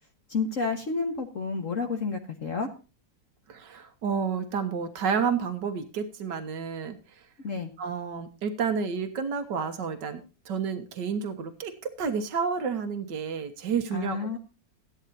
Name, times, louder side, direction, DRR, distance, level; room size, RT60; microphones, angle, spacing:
voice 1, 0.3-2.7 7.4-7.7 13.9-14.4, left 4 dB, 50° left, 4 dB, 1.7 m, -30 dB
voice 2, 3.5-7.0 7.8-10.2 10.5-14.4, right 6 dB, 80° right, 8 dB, 2.0 m, -30 dB
15.5 x 12.0 x 2.7 m, 0.32 s
omnidirectional pair, 1.9 m